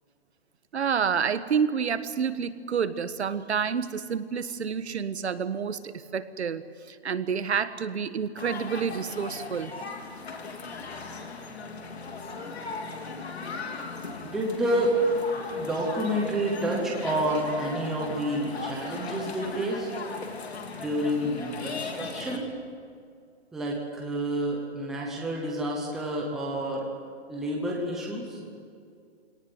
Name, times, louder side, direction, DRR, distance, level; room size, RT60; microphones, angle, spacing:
voice 1, 0.7-9.7, right 6 dB, 75° right, 12 dB, 1.5 m, -29 dB
sound 1, 8.4-22.4, left 4 dB, 70° left, 3.4 m, -37 dB
voice 2, 14.2-15.0 15.5-19.9 20.8-22.4 23.5-26.9 27.3-28.4, right 1 dB, ahead, -3 dB, 0.9 m, -29 dB
23.0 x 18.5 x 9.4 m, 2.3 s
hypercardioid pair, 175°, 33 cm